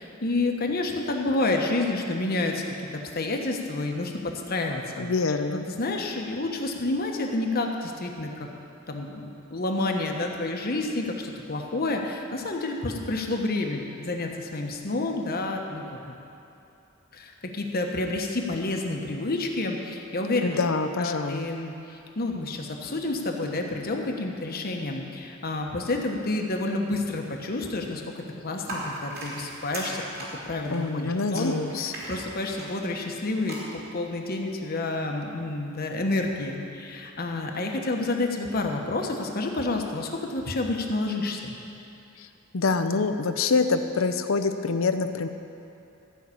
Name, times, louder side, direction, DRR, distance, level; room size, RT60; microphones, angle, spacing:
voice 1, 0.0-2.6 3.1-4.1 4.5-5.1 5.5-8.5 8.9-16.1 17.1-20.6 21.0-21.7 22.2-30.0 30.4-31.5 31.8-41.5, left 2 dB, 50° left, 2 dB, 1.2 m, -29 dB
voice 2, 5.0-5.7 20.4-21.5 30.7-31.9 42.5-45.3, left 4 dB, 70° left, 9 dB, 0.7 m, -25 dB
sound 1, 28.6-33.5, right 1 dB, 50° right, 3.3 m, -38 dB
14.5 x 5.7 x 8.5 m, 2.8 s
head